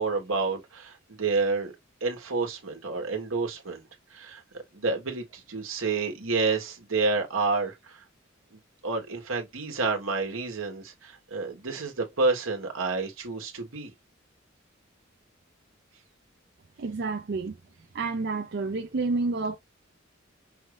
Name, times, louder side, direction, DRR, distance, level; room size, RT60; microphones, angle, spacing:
voice 1, 0.0-1.7 2.0-3.8 4.1-8.0 8.8-13.9, right 4 dB, 80° right, 1.4 m, -29 dB
voice 2, 16.8-17.6 17.9-19.6, right 3 dB, 55° right, 0.5 m, -29 dB
5.6 x 2.5 x 3.2 m
head